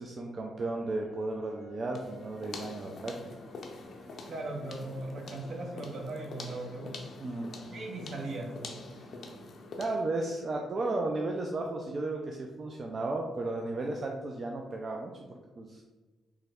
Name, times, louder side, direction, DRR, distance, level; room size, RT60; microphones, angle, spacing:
voice 1, 0.0-3.4 7.2-7.7 8.9-9.1 9.8-15.8, right 2 dB, 45° right, 1 dB, 0.3 m, -34 dB
sound 1, 0.7-10.2 10.6-10.7, left 2 dB, 90° right, 1.2 m, -58 dB
sound 2, 1.9-10.1, left 2 dB, 60° left, 0.5 m, -45 dB
voice 2, 4.3-7.0 7.7-8.5, right 2 dB, 65° right, 1 dB, 0.7 m, -38 dB
3.3 x 2.1 x 3.4 m, 1.2 s
supercardioid pair, 65°, 0 cm